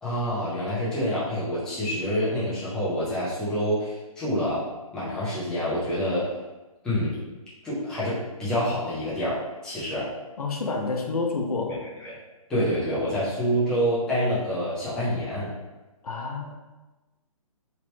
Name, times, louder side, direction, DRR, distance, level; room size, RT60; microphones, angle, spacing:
voice 1, 0.0-4.7 4.9-6.3 6.8-7.2 7.6-10.1 12.0-12.1 12.5-15.5, equal, 5° left, -10 dB, 0.4 m, -27 dB
voice 2, 10.4-11.7 16.0-16.6, left 3 dB, 90° left, 2 dB, 0.6 m, -28 dB
3.0 x 2.1 x 3.0 m, 1.1 s
hypercardioid pair, 155°, 19 cm